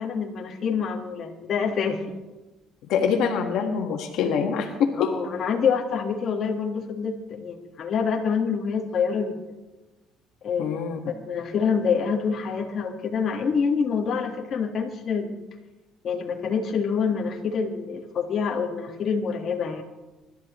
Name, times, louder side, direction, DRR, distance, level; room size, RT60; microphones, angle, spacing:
voice 1, 0.0-2.2 4.9-9.4 10.4-15.3 16.0-19.8, left 6 dB, 45° left, 1 dB, 1.7 m, -26 dB
voice 2, 2.9-5.1 10.6-11.0, left 6 dB, 75° left, 3 dB, 1.7 m, -24 dB
25.5 x 12.5 x 3.1 m, 1.1 s
cardioid pair, 135°, 0 cm